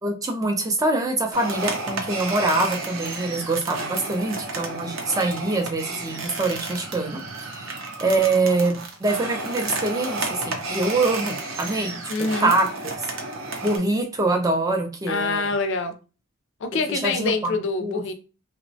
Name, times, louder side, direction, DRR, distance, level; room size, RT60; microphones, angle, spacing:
voice 1, 0.0-12.0 12.4-12.9 13.6-15.5 16.7-18.0, right 2 dB, 15° right, 0.4 m, -24 dB
sound 1, 1.3-13.8, right 3 dB, 60° right, 0.6 m, -32 dB
voice 2, 12.1-12.5 15.1-15.9 16.6-18.1, left 3 dB, 55° left, 0.4 m, -25 dB
2.9 x 2.1 x 2.6 m
head